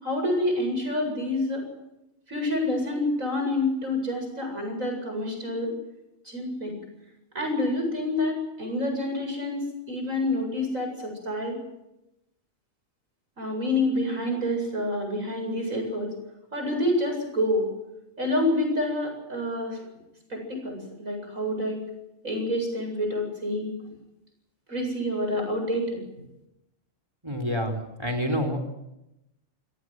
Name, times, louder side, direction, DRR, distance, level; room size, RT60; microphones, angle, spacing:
voice 1, 0.0-1.6 2.3-5.7 6.3-6.7 7.4-11.6 13.4-16.1 16.5-17.7 18.2-19.9 20.3-21.8 22.2-23.7 24.7-26.0, left 1 dB, 85° right, 3 dB, 8.6 m, -28 dB
voice 2, 27.2-28.6, equal, 20° right, 7 dB, 4.2 m, -28 dB
28.5 x 17.5 x 8.1 m, 0.89 s
omnidirectional pair, 1.4 m